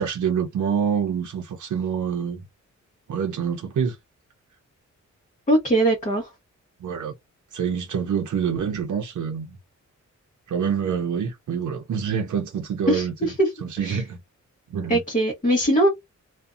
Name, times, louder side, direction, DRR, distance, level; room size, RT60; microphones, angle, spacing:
voice 1, 0.0-2.4 3.1-4.0 6.8-7.1 7.5-9.6 10.5-14.2 14.7-15.0, right 7 dB, 80° right, 0.6 m, -26 dB
voice 2, 5.5-6.3 12.9-13.5 13.8-14.0 14.9-15.9, right 1 dB, 25° left, 0.9 m, -21 dB
2.5 x 2.2 x 2.4 m
wide cardioid pair, 125°, 30 cm